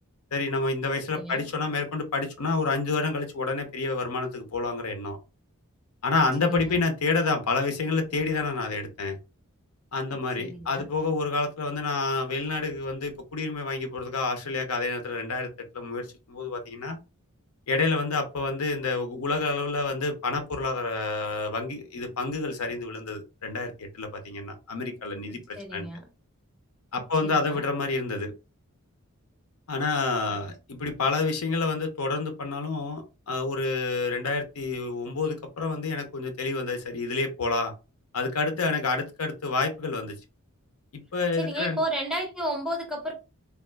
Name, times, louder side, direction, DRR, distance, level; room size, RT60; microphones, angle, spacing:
voice 1, 0.3-5.2 6.0-9.2 9.9-17.0 17.7-25.9 26.9-28.3 29.7-37.7 38.1-40.2 40.9-41.8, left 3 dB, 75° left, 0.7 m, -28 dB
voice 2, 1.1-1.4 6.4-6.8 10.4-10.8 25.6-26.0 27.2-27.6 30.3-30.4 41.4-43.1, right 1 dB, 5° right, 0.7 m, -32 dB
3.4 x 2.3 x 2.2 m
head